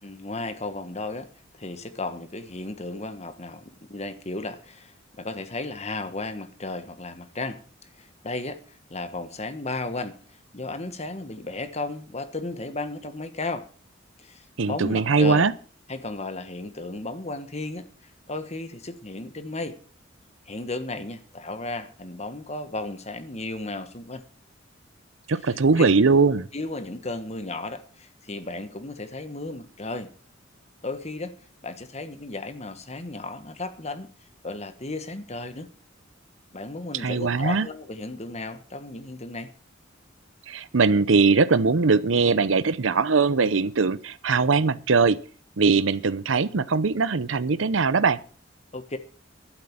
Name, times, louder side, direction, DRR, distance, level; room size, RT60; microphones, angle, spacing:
voice 1, 0.0-1.3 1.6-7.6 8.0-8.6 8.9-10.2 10.5-13.7 14.2-15.5 15.9-17.9 18.3-19.8 20.5-24.2 25.5-25.6 26.5-30.1 30.8-31.3 31.6-34.1 34.4-35.7 36.5-39.5 48.7-49.0, left 2 dB, 35° left, 1.5 m, -34 dB
voice 2, 14.6-15.5 25.3-26.5 37.0-37.7 40.5-45.2 45.6-48.2, right 4 dB, 85° right, 0.7 m, -21 dB
12.0 x 7.9 x 7.2 m
head